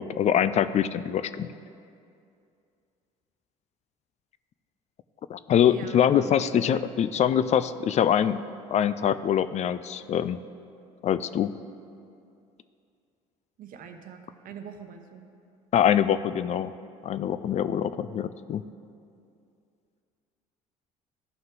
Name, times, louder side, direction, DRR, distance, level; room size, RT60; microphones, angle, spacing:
voice 1, 0.0-1.5 5.3-8.4 8.7-10.4 11.0-11.5 15.7-16.7 17.0-18.6, left 9 dB, 45° left, 14 dB, 0.4 m, -24 dB
voice 2, 5.7-6.8 13.6-15.2, right 7 dB, 60° right, 6 dB, 0.9 m, -43 dB
13.5 x 5.4 x 3.8 m, 2.5 s
hypercardioid pair, 70°, 16 cm